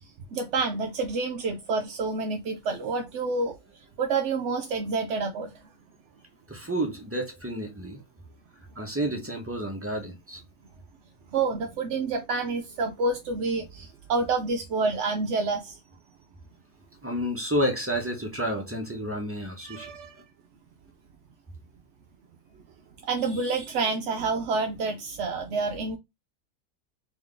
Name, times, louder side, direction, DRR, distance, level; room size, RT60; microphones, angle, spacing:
voice 1, 0.0-5.7 9.0-9.1 11.3-15.8 19.6-20.2 23.0-26.0, right 4 dB, 70° right, 0.7 m, -28 dB
voice 2, 6.5-8.0 8.8-10.4 17.0-19.9, equal, 15° right, 0.4 m, -30 dB
3.5 x 3.0 x 3.7 m
omnidirectional pair, 1.7 m